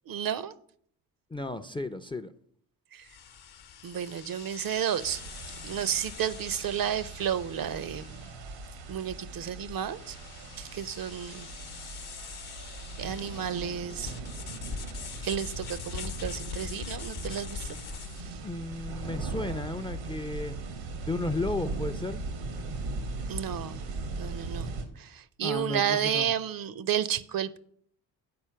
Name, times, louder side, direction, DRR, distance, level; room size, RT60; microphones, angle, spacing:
voice 1, 0.1-0.5 2.9-3.1 3.8-5.2 5.6-8.3 8.9-10.2 10.6-11.5 13.0-14.1 15.2-17.7 18.2-18.4 23.3-23.8 24.2-27.6, right 9 dB, 50° right, 0.6 m, -32 dB
voice 2, 1.3-2.3 18.4-20.6 21.0-22.2 25.4-26.3, left 2 dB, 10° left, 0.4 m, -34 dB
sound 1, 3.0-18.4, left 7 dB, 55° left, 0.9 m, -43 dB
sound 2, 5.0-24.9, right 3 dB, 85° right, 1.4 m, -39 dB
8.6 x 4.4 x 5.6 m
supercardioid pair, 55°, 45 cm